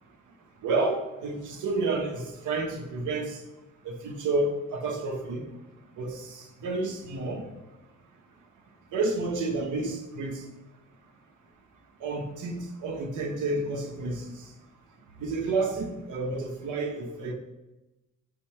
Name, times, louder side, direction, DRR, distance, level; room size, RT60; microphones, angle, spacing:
voice 1, 0.6-3.4 3.8-5.4 6.0-7.4 8.9-10.4 12.0-14.2 15.2-17.3, right 3 dB, 80° right, 3 dB, 1.4 m, -30 dB
6.5 x 4.3 x 5.8 m, 1.0 s
cardioid pair, 90°, 30 cm